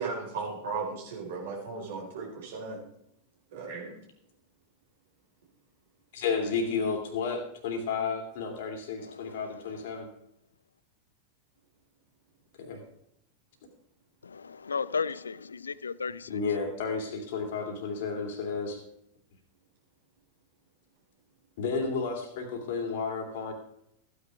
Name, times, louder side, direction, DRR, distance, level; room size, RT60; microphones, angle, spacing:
voice 1, 0.0-2.8 3.5-3.9, right 4 dB, 55° right, 4.4 m, -36 dB
voice 2, 6.1-10.1 12.6-12.8 16.3-18.8 21.6-23.5, left 5 dB, 55° left, 2.8 m, -32 dB
voice 3, 9.0-9.6 14.2-16.4, left 5 dB, 75° left, 0.4 m, -35 dB
15.5 x 9.5 x 3.5 m
figure-of-eight pair, 90°, 0 cm